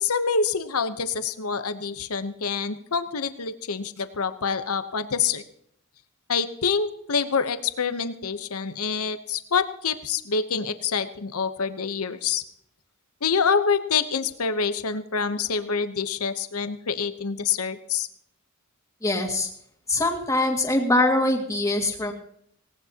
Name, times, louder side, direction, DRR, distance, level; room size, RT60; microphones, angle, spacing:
voice 1, 0.0-5.4 6.3-12.4 13.2-18.1, left 5 dB, 90° left, 10 dB, 0.9 m, -26 dB
voice 2, 19.0-19.5 19.9-22.1, left 2 dB, 15° left, 1 dB, 2.1 m, -23 dB
19.0 x 18.0 x 2.9 m, 0.69 s
head